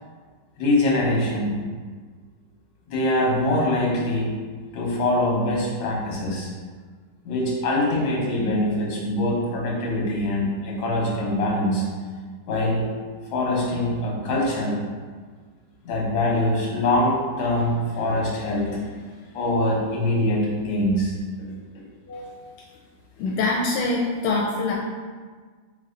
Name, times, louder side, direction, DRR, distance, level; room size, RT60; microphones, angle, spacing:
voice 1, 0.6-1.6 2.9-4.3 4.7-6.5 7.2-11.8 12.5-12.9 13.3-14.8 15.8-18.8 19.3-21.1 22.1-22.4, left 1 dB, 70° left, -3 dB, 1.8 m, -23 dB
voice 2, 23.2-24.7, left 3 dB, 90° left, -2 dB, 1.5 m, -24 dB
3.9 x 3.3 x 3.7 m, 1.5 s
omnidirectional pair, 2.3 m